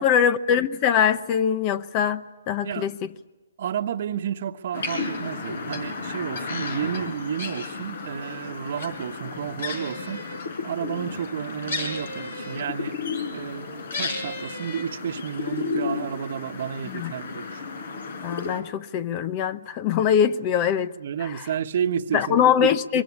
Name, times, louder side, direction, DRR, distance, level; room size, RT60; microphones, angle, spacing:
voice 1, 0.0-2.9 16.8-17.1 18.2-20.9 21.2-21.5 22.1-23.0, left 8 dB, 30° left, 0.9 m, -23 dB
voice 2, 3.6-10.3 10.6-13.0 13.3-17.6 21.0-22.7 22.9-23.0, right 8 dB, 55° right, 1.3 m, -31 dB
sound 1, 4.7-18.6, left 4 dB, 65° left, 4.8 m, -33 dB
23.5 x 23.0 x 9.8 m
hypercardioid pair, 140°, 0 cm